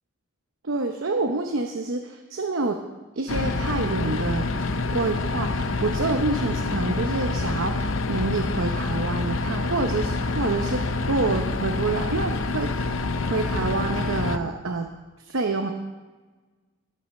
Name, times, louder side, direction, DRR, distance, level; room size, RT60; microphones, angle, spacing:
voice 1, 0.6-2.8 3.2-4.5 4.9-12.9 13.3-14.9 15.2-15.7, right 3 dB, 80° right, 4 dB, 0.8 m, -27 dB
sound 1, 3.3-14.4, left 3 dB, 75° left, 0.6 m, -27 dB
16.5 x 5.6 x 6.5 m, 1.3 s
head